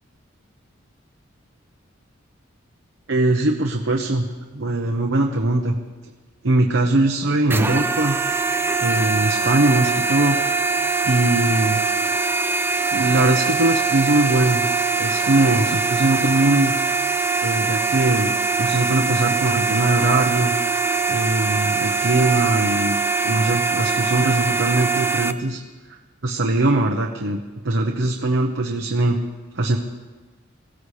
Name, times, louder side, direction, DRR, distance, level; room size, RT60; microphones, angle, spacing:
voice 1, 3.1-4.3 4.5-5.7 6.4-8.2 8.8-10.4 11.0-11.8 12.9-14.6 15.0-16.7 17.4-18.3 18.6-20.5 21.1-23.0 23.2-25.6 26.2-29.2 29.6-29.8, right 2 dB, 70° right, 1 dB, 1.1 m, -21 dB
sound 1, 7.5-25.3, right 4 dB, 10° right, 0.5 m, -22 dB
24.0 x 15.5 x 3.3 m, 1.3 s
head